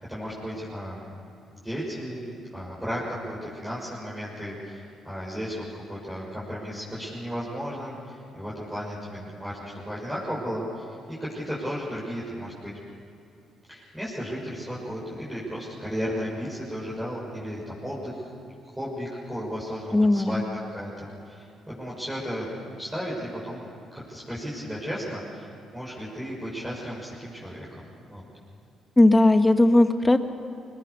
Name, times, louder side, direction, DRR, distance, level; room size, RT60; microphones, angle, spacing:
voice 1, 0.1-1.1 1.5-12.7 13.7-18.3 18.6-20.4 20.7-21.5 21.8-22.5 22.8-23.7 24.1-25.5 25.7-28.2, equal, 10° right, -8 dB, 6.7 m, -34 dB
voice 2, 19.9-20.4 29.0-30.2, left 2 dB, 15° left, 8 dB, 1.5 m, -18 dB
25.5 x 21.0 x 7.0 m, 2.6 s
cardioid pair, 90°, 0 cm